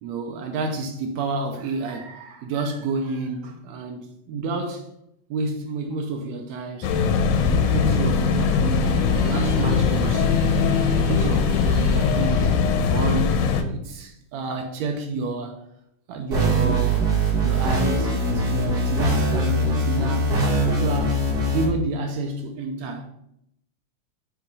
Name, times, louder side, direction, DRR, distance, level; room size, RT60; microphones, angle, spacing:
voice 1, 0.0-4.9 5.3-6.9 7.4-10.6 10.9-12.5 12.9-15.6 16.1-17.1 17.4-21.2 21.5-23.1, right 3 dB, 80° right, 1.6 m, -30 dB
sound 1, 6.8-13.6, left 5 dB, 85° left, 2.2 m, -21 dB
sound 2, 8.8-12.6, right 1 dB, 65° right, 2.6 m, -37 dB
sound 3, 16.3-21.6, right 1 dB, 35° right, 1.9 m, -22 dB
6.9 x 2.9 x 5.3 m
omnidirectional pair, 3.8 m